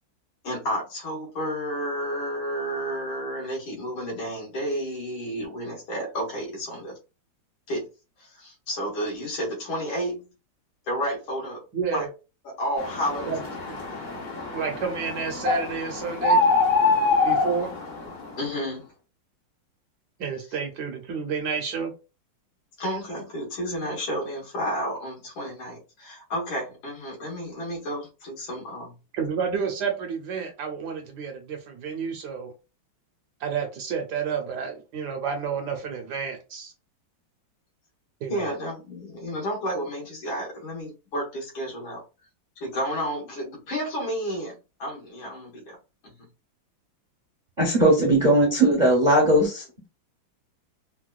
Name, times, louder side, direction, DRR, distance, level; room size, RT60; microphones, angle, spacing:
voice 1, 0.4-7.0 7.7-7.8 8.2-10.3 10.9-11.6 11.9-12.1 12.4-13.3 18.4-18.9 22.8-28.9 38.3-42.0 42.6-45.8, equal, 85° left, 2.3 m, -31 dB
voice 2, 11.7-12.1 13.2-13.4 13.7-13.8 14.5-16.4 17.2-17.7 20.2-21.9 29.1-32.5 33.4-36.7 38.2-38.5 39.2-39.3 48.0-48.3, right 6 dB, 65° right, 1.1 m, -30 dB
sound 1, 12.8-18.3, left 3 dB, 55° left, 0.5 m, -25 dB
voice 3, 47.6-49.9, right 1 dB, 45° right, 0.5 m, -19 dB
4.5 x 2.2 x 2.3 m
omnidirectional pair, 2.2 m